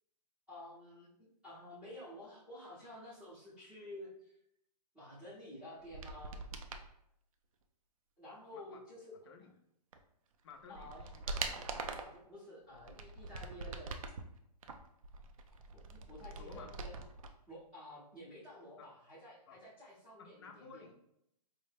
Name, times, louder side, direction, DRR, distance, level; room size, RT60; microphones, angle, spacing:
voice 1, 0.5-1.1 1.4-4.3 4.9-6.4 8.2-9.1 10.7-11.0 11.8-14.0 15.7-16.9 17.5-20.8, left 1 dB, 5° right, -11 dB, 0.6 m, -51 dB
sound 1, 5.8-6.9 9.9-10.0 10.5-12.2 12.7-14.2 14.6-17.3 17.6-17.7, right 4 dB, 55° right, 0.4 m, -43 dB
voice 2, 10.4-11.7 16.4-16.7 18.8-18.9 19.5-19.6 20.2-21.0, left 5 dB, 40° left, 4 dB, 0.5 m, -55 dB
4.6 x 2.1 x 3.3 m, 0.77 s
hypercardioid pair, 165°, 21 cm